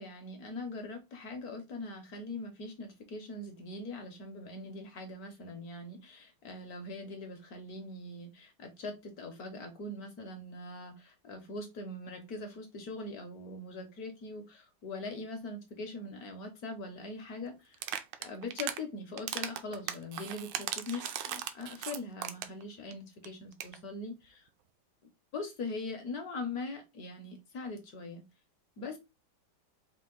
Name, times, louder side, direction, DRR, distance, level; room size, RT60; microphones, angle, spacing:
voice 1, 0.0-17.8 18.2-24.5 25.3-28.2 28.8-29.0, left 2 dB, 65° left, 1.0 m, -42 dB
sound 1, 17.7-18.8 19.2-22.6 22.9-23.0 23.2-23.3 23.5-23.8, right 10 dB, 75° right, 1.1 m, -37 dB
4.5 x 2.4 x 3.7 m
omnidirectional pair, 2.3 m